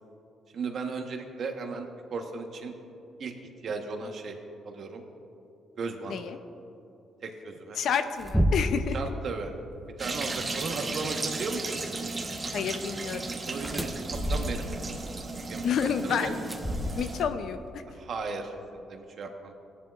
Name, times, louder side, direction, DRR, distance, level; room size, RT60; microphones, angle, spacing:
voice 1, 0.5-2.7 3.2-3.3 3.6-4.4 4.6-5.0 5.8-6.2 7.2-7.8 8.9-9.5 10.0-11.8 13.4-14.0 14.3-14.7 15.5-15.7 16.0-16.4 17.9-19.5, right 4 dB, 60° right, 4 dB, 1.2 m, -35 dB
voice 2, 7.8-9.0 12.5-13.3 15.6-16.4 17.0-17.8, left 7 dB, 70° left, 9 dB, 0.6 m, -29 dB
sound 1, 7.9-8.9 10.2-10.5 13.5-14.8 16.4-17.3, equal, 5° right, 0.8 m, -29 dB
sound 2, 10.0-17.2, right 3 dB, 30° right, 1.2 m, -35 dB
16.5 x 11.0 x 2.5 m, 2.7 s
cardioid pair, 90°, 0 cm